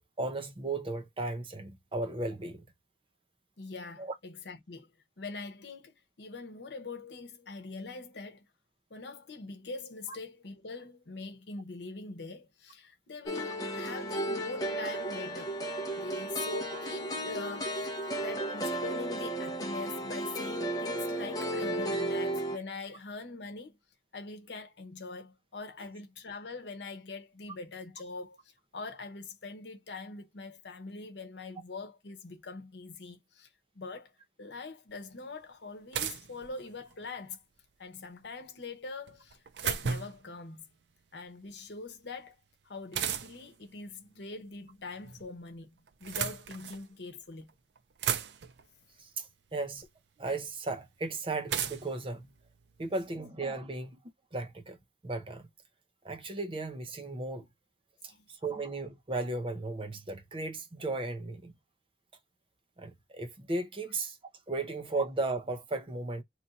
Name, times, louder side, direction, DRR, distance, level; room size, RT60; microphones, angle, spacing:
voice 1, 0.0-2.6 4.0-4.2 49.0-49.9 50.2-52.3 52.8-54.0 54.3-54.8 55.0-55.5 56.0-57.5 58.3-61.5 62.8-64.2 64.5-66.2, right 2 dB, 30° right, 0.7 m, -35 dB
voice 2, 3.6-4.9 5.2-8.4 8.9-15.6 16.0-23.8 24.1-33.5 33.7-37.4 37.8-40.7 41.1-42.4 42.6-45.7 46.0-47.5 52.8-52.9 58.1-58.3, left 3 dB, 85° left, 0.9 m, -43 dB
sound 1, 13.3-22.6, right 1 dB, 20° left, 0.8 m, -34 dB
sound 2, 34.9-35.0 35.9-37.0 39.1-40.3 42.9-43.5 44.7-45.3 45.9-46.9 47.5-47.6 47.8-48.7 49.8-49.9 51.5-53.0, right 8 dB, 80° right, 0.5 m, -35 dB
2.9 x 2.6 x 4.0 m
head